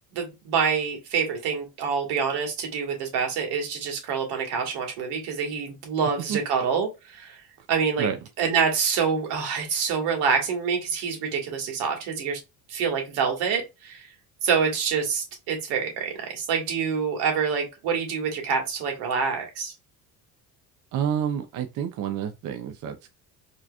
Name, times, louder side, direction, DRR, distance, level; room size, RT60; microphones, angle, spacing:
voice 1, 0.1-7.4 7.7-8.1 8.4-12.4 12.7-14.0 14.4-19.7, right 6 dB, 80° right, 1.6 m, -26 dB
voice 2, 20.9-23.1, right 9 dB, 50° right, 0.6 m, -29 dB
4.4 x 2.9 x 2.3 m
cardioid pair, 115°, 38 cm